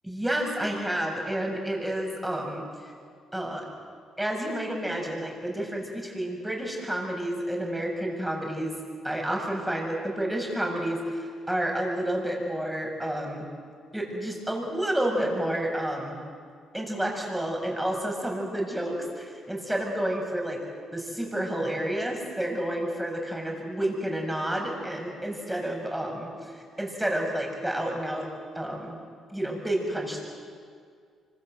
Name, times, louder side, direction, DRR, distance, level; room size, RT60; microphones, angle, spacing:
voice 1, 0.0-2.6 3.3-3.6 4.2-8.7 9.0-13.5 13.9-16.2 16.7-20.6 20.9-28.2 28.6-28.9 29.3-30.2, right 1 dB, 10° right, 0 dB, 7.3 m, -30 dB
26.0 x 25.5 x 7.9 m, 2.1 s
cardioid pair, 90°, 0 cm